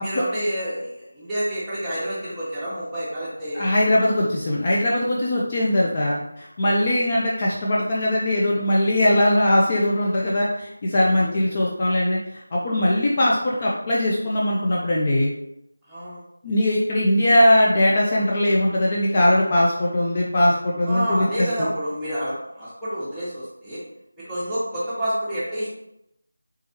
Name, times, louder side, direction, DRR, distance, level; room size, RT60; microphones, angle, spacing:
voice 1, 0.0-3.9 11.1-11.4 15.9-16.2 20.8-23.8 24.2-25.7, equal, 5° right, -14 dB, 0.9 m, -29 dB
voice 2, 3.5-15.3 16.4-21.5, left 1 dB, 30° left, -4 dB, 0.4 m, -20 dB
3.5 x 3.1 x 2.8 m, 0.83 s
figure-of-eight pair, 170°, 0 cm